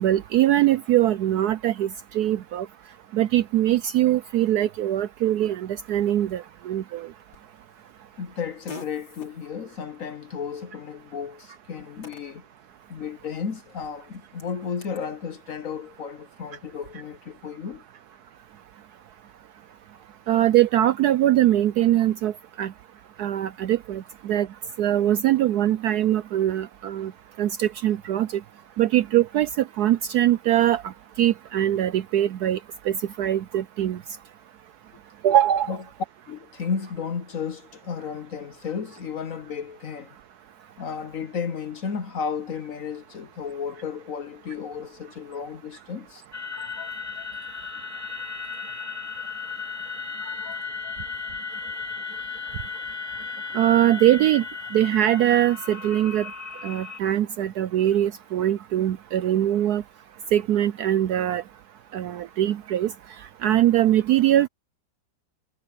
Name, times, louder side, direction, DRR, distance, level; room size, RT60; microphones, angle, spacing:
voice 1, 0.0-1.9 2.1-2.7 3.1-7.1 20.3-22.3 22.6-22.7 23.2-24.5 24.8-27.1 27.4-28.3 28.8-30.8 31.2-32.6 32.9-34.0 35.2-35.7 53.5-54.4 54.7-56.3 56.6-59.8 60.3-61.4 61.9-62.9 63.4-64.5, right 12 dB, 70° right, 0.9 m, -22 dB
Fart, 7.3-15.1, left 4 dB, 80° left, 5.1 m, -49 dB
voice 2, 8.2-12.4 12.9-17.8 35.7-35.8 36.3-40.2 40.8-46.2 46.5-47.3 50.2-51.0, left 6 dB, 55° left, 1.1 m, -34 dB
sound 1, 46.3-57.0, left 5 dB, 10° left, 3.2 m, -35 dB
omnidirectional pair, 2.1 m